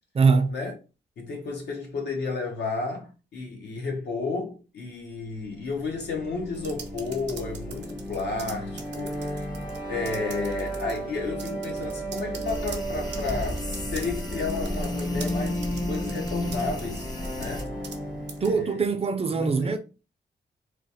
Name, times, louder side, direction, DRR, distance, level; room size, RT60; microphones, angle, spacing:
voice 1, 0.1-0.5 18.4-19.8, right 4 dB, 35° right, 0.5 m, -22 dB
voice 2, 1.2-9.1 9.9-17.1 17.3-17.7 18.4-19.0 19.3-19.8, left 4 dB, 80° left, 1.0 m, -32 dB
sound 1, 5.6-18.6, equal, 50° left, 1.2 m, -33 dB
sound 2, 6.5-9.8 10.0-11.0 11.4-18.0 18.3-18.5, right 6 dB, 85° right, 0.6 m, -43 dB
sound 3, 12.4-17.6, left 1 dB, 25° left, 0.7 m, -36 dB
3.1 x 2.1 x 2.7 m
cardioid pair, 85°, 17 cm